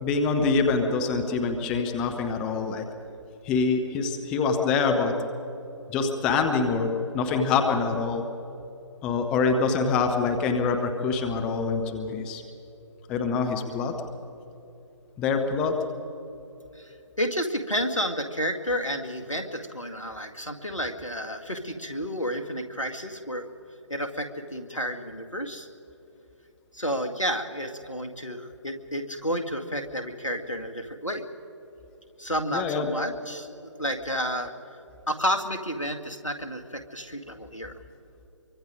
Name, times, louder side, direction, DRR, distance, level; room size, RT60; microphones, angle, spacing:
voice 1, 0.0-2.9 3.4-5.1 5.9-8.2 9.0-12.4 13.1-13.9 15.2-15.7 32.5-32.9, left 4 dB, 5° left, 4 dB, 0.4 m, -25 dB
voice 2, 17.2-23.5 23.9-25.7 26.7-31.2 32.2-33.5 33.8-34.5 35.1-37.7, equal, 90° left, 6 dB, 2.1 m, -31 dB
25.0 x 23.5 x 5.1 m, 2.9 s
figure-of-eight pair, 150°, 16 cm